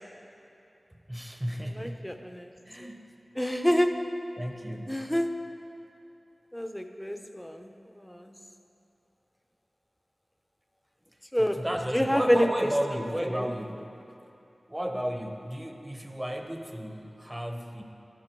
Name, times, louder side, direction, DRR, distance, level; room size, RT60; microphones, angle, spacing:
voice 1, 1.1-2.0 2.7-3.1 4.4-5.0 11.4-13.9 14.7-17.8, equal, 15° right, 4 dB, 1.0 m, -33 dB
voice 2, 1.8-2.5 3.4-3.9 4.9-5.3 6.5-7.7 8.0-8.3 11.3-11.6 11.9-12.5 13.3-13.5, equal, 5° left, 6 dB, 0.7 m, -27 dB
12.5 x 11.0 x 4.6 m, 2.8 s
wide cardioid pair, 60°, 0 cm